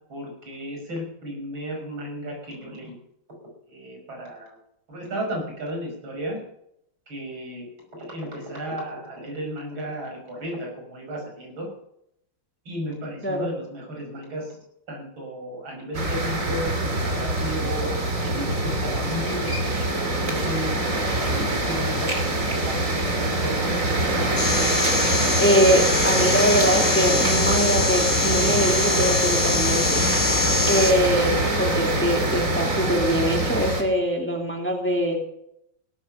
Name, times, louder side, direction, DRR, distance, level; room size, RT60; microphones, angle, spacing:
voice 1, 0.1-3.0 3.7-4.6 4.9-6.4 7.1-7.7 8.0-11.7 12.6-14.6 14.9-17.9 18.2-20.8 21.3-22.3 22.7-23.9, equal, 80° right, 1 dB, 6.6 m, -34 dB
sound 1, 15.9-33.8, right 1 dB, 40° right, 3.1 m, -24 dB
sound 2, 24.4-30.9, left 4 dB, 30° left, 3.8 m, -25 dB
voice 2, 25.4-30.0 30.7-35.2, equal, 5° left, 2 dB, 2.4 m, -23 dB
17.0 x 13.0 x 5.8 m, 0.76 s
omnidirectional pair, 2.2 m